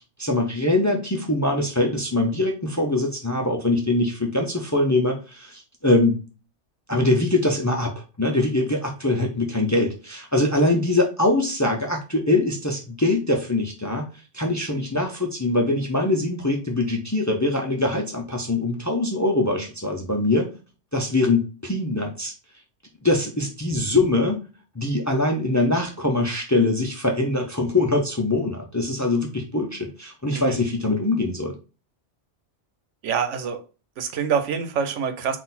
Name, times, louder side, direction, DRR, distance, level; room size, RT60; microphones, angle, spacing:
voice 1, 0.0-6.2 6.9-14.1 14.3-20.5 20.9-22.3 23.0-24.4 24.8-31.6, left 2 dB, 20° left, 0.5 m, -23 dB
voice 2, 33.0-33.6 34.0-35.4, right 6 dB, 85° right, 1.0 m, -26 dB
3.9 x 2.6 x 4.1 m
omnidirectional pair, 1.2 m